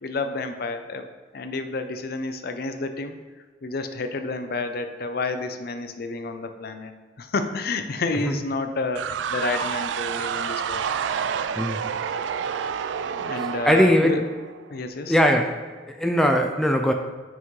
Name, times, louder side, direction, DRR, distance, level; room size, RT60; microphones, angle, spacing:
voice 1, 0.0-1.0 1.3-3.2 3.6-6.9 7.2-10.8 13.0-14.2 14.7-15.2, left 3 dB, 55° left, 8 dB, 0.5 m, -30 dB
sound 1, 8.9-14.7, right 7 dB, 80° right, 0.3 m, -29 dB
voice 2, 13.4-14.2 15.1-16.9, equal, ahead, 3 dB, 0.4 m, -21 dB
7.1 x 5.7 x 3.2 m, 1.5 s
head